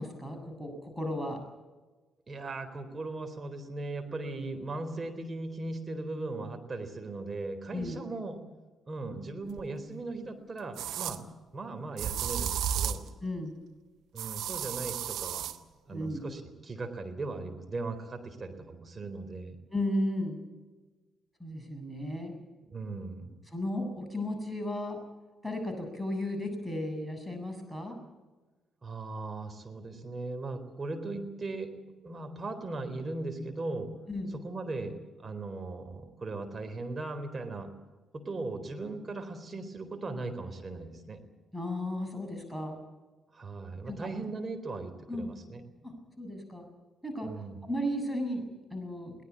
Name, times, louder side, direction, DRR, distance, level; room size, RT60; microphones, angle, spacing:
voice 1, 0.0-1.4 7.7-8.0 13.2-13.6 15.9-16.2 19.7-20.4 21.4-22.3 23.5-25.0 25.4-28.0 34.1-34.4 41.5-42.8 43.9-44.0 45.1-45.3 45.8-46.6 47.0-49.2, left 1 dB, 5° right, 5 dB, 7.6 m, -34 dB
voice 2, 2.3-8.4 8.9-11.2 11.5-13.1 14.1-15.5 15.9-19.6 22.7-23.3 28.8-31.7 32.0-33.9 34.3-37.7 38.1-41.2 43.3-45.6 47.2-47.7, right 2 dB, 35° right, 6 dB, 4.1 m, -38 dB
sound 1, 9.6-9.7 10.8-11.2 12.0-13.1 14.2-15.6, right 9 dB, 65° right, 1.1 m, -33 dB
22.0 x 18.0 x 8.5 m, 1.2 s
figure-of-eight pair, 40°, 0 cm